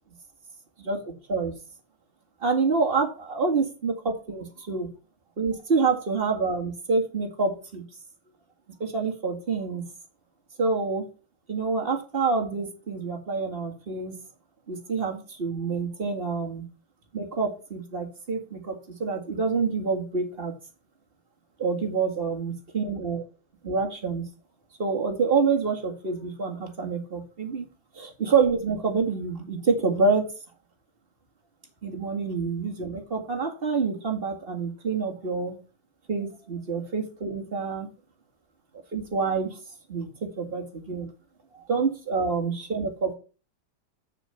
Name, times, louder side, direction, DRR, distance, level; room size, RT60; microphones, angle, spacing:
voice 1, 0.8-1.5 2.4-4.9 5.4-7.8 8.8-9.8 10.6-11.1 11.5-14.1 14.7-16.6 17.1-20.5 21.6-23.2 23.6-24.2 24.8-27.7 28.0-30.3 31.8-35.6 36.1-37.9 38.9-39.6 39.9-41.1 41.5-43.1, right 4 dB, 30° right, 1 dB, 2.1 m, -27 dB
7.7 x 6.8 x 5.7 m, 0.35 s
omnidirectional pair, 2.2 m